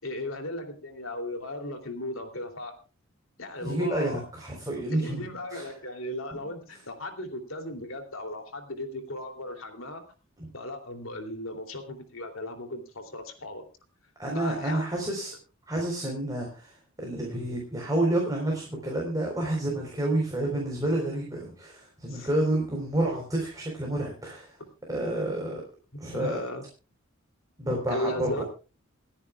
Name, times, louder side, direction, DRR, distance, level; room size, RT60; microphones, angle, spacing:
voice 1, 0.0-2.7 3.4-4.2 4.9-10.0 10.5-13.6 14.3-14.9 22.1-22.3 25.9-26.6 27.9-28.4, left 1 dB, 75° left, 6 dB, 3.0 m, -36 dB
voice 2, 3.6-5.2 5.5-5.7 6.4-6.5 10.4-10.5 14.2-15.3 15.7-16.7 17.0-24.5 24.9-25.6 26.0-26.4 27.6-28.4, right 1 dB, 15° right, -1 dB, 4.1 m, -29 dB
28.0 x 10.0 x 2.4 m, 0.34 s
head